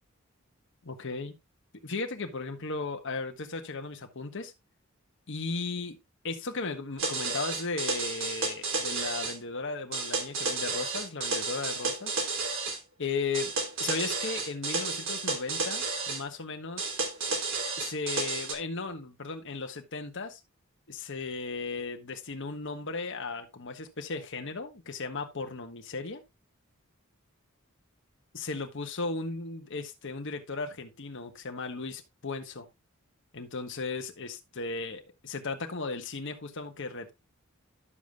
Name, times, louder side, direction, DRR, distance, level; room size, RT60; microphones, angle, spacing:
voice 1, 0.8-1.3 1.8-4.5 5.3-6.0 6.2-12.2 13.0-13.5 13.8-16.9 17.8-20.4 20.9-26.2 28.3-32.7 33.3-37.1, left 3 dB, 60° left, 1.3 m, -36 dB
sound 1, 7.0-9.4 9.9-12.8 13.3-16.2 16.8-18.5, right 3 dB, 65° right, 2.7 m, -32 dB
11.5 x 7.1 x 2.4 m
head